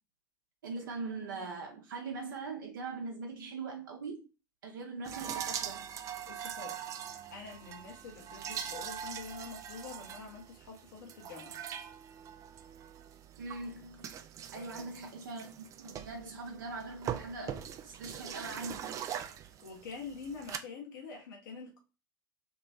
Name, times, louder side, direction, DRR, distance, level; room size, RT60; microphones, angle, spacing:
voice 1, 0.6-4.3 4.6-5.9 13.4-14.1 14.5-19.0, right 3 dB, 65° right, 0.7 m, -41 dB
sound 1, 5.0-20.6, right 9 dB, 30° right, 0.4 m, -42 dB
voice 2, 6.3-6.8 7.3-11.6 14.5-14.9 19.6-21.8, left 5 dB, 60° left, 1.1 m, -46 dB
3.1 x 2.9 x 4.1 m
figure-of-eight pair, 80°, 11 cm